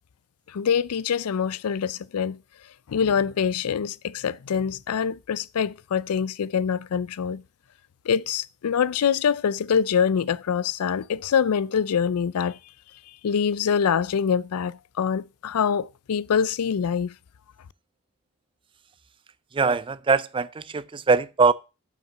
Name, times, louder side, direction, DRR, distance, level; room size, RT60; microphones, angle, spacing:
voice 1, 0.5-2.4 2.9-7.4 8.1-12.6 13.2-17.1, left 7 dB, 85° left, 0.4 m, -25 dB
voice 2, 19.5-21.5, right 4 dB, 25° right, 0.4 m, -22 dB
7.3 x 5.9 x 6.0 m
head